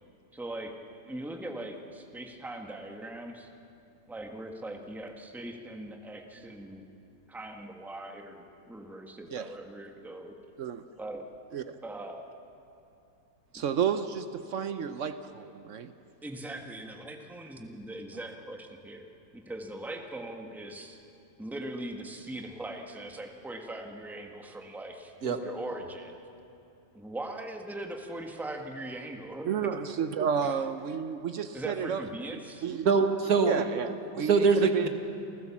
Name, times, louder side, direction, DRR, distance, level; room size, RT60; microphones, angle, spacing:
voice 1, 0.3-0.7 1.1-3.5 4.1-6.8 7.3-10.3 11.0-11.2 11.8-12.2 13.5-13.6 16.2-19.0 19.3-21.0 21.4-25.1 25.4-26.2 26.9-29.8 30.4-30.5 31.5-32.7, right 1 dB, ahead, 3 dB, 1.3 m, -40 dB
voice 2, 13.5-15.9 29.4-32.0 32.6-32.9 33.4-34.9, right 7 dB, 80° right, 10 dB, 0.6 m, -31 dB
voice 3, 32.8-33.5 34.2-34.9, right 4 dB, 50° right, 6 dB, 1.8 m, -23 dB
28.5 x 15.0 x 7.2 m, 2.8 s
omnidirectional pair, 2.2 m